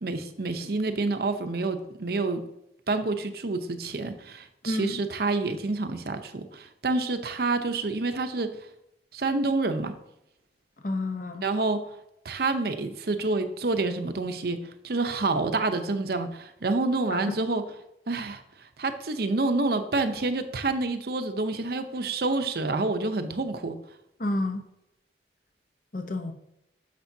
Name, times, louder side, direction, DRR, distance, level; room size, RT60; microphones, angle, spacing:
voice 1, 0.0-2.4 2.9-8.5 9.1-9.9 11.4-11.8 12.2-14.6 14.8-17.6 18.1-23.8, right 3 dB, 55° right, 8 dB, 0.7 m, -28 dB
voice 2, 4.7-5.0 10.8-11.4 17.1-17.4 24.2-24.6 25.9-26.3, left 2 dB, 45° left, 6 dB, 0.8 m, -30 dB
10.5 x 6.7 x 2.7 m, 0.84 s
head